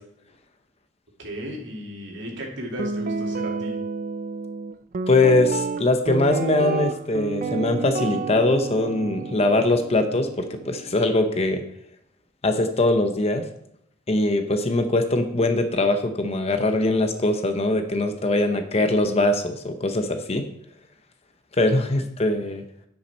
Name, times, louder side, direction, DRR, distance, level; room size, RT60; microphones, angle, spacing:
voice 1, 1.2-3.8, equal, 70° right, -1 dB, 2.5 m, -35 dB
Guitar, 2.8-11.0, right 4 dB, 45° right, 0.4 m, -30 dB
voice 2, 5.1-10.3 10.6-11.6 12.4-13.4 14.1-20.4 21.6-22.6, left 2 dB, 35° left, 7 dB, 0.7 m, -22 dB
10.0 x 6.1 x 4.3 m, 0.73 s
head